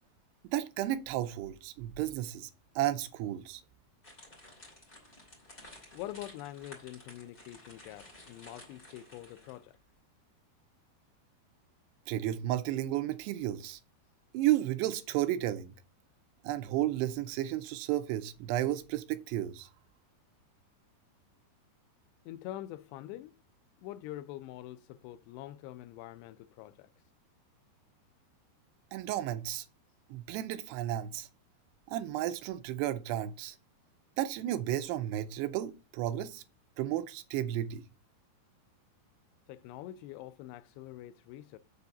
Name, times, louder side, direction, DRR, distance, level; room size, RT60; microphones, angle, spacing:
voice 1, 0.5-2.5 2.8-3.6 12.1-13.8 14.3-15.7 16.4-19.7 28.9-29.7 30.1-31.3 31.9-33.6 34.2-36.4 36.8-37.8, right 13 dB, 90° right, 2.8 m, -33 dB
sound 1, 4.0-9.7, left 1 dB, 15° left, 2.3 m, -54 dB
voice 2, 5.9-9.8 22.3-23.3 23.8-26.9 39.5-41.6, left 14 dB, 90° left, 2.7 m, -45 dB
7.0 x 4.2 x 6.7 m
omnidirectional pair, 4.8 m